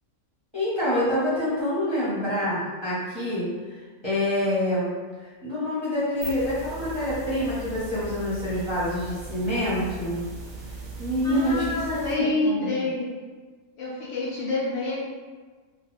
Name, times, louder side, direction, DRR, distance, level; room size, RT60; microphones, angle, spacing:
voice 1, 0.5-10.2 11.0-11.7 12.1-12.7, left 1 dB, 25° right, -11 dB, 0.7 m, -27 dB
sound 1, 6.0-12.1, right 3 dB, 60° right, 0.6 m, -39 dB
voice 2, 11.2-13.1 13.8-15.0, left 2 dB, 70° left, -6 dB, 0.8 m, -27 dB
2.4 x 2.2 x 3.0 m, 1.4 s
omnidirectional pair, 1.5 m